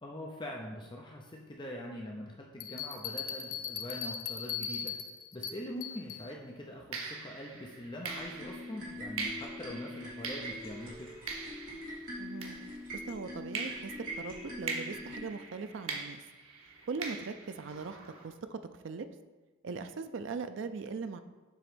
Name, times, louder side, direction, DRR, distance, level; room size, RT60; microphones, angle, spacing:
voice 1, 0.0-4.9 5.3-11.1, left 1 dB, 20° left, -1 dB, 0.6 m, -43 dB
sound 1, 2.6-6.3, left 7 dB, 85° left, 0.6 m, -39 dB
sound 2, 5.8-6.0 6.9-13.1 13.5-18.3, right 4 dB, 90° right, 1.0 m, -43 dB
sound 3, 8.0-15.3, equal, 45° right, 2.0 m, -43 dB
voice 2, 12.2-12.6 13.1-16.2 16.9-18.6 18.8-19.1 19.6-21.2, right 4 dB, 60° right, 9 dB, 0.4 m, -40 dB
7.6 x 3.0 x 5.0 m, 1.2 s
head